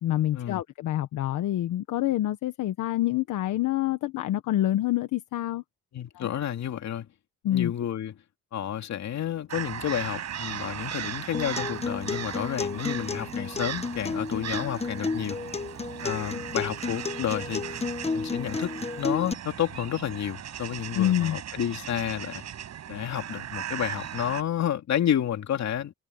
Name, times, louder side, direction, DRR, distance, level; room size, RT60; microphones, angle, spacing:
voice 1, 0.0-5.6 6.1-6.3 7.4-7.7 20.9-21.4, left 13 dB, 85° left, 1.4 m, -27 dB
voice 2, 5.9-7.1 7.5-8.1 8.5-15.4 16.0-17.6 18.1-22.4 22.9-25.9, left 10 dB, 65° left, 2.7 m, -30 dB
sound 1, 9.5-24.4, right 9 dB, 65° right, 5.2 m, -37 dB
Acoustic guitar, 11.3-19.3, left 4 dB, 20° left, 1.1 m, -32 dB
cardioid pair, 90°, 30 cm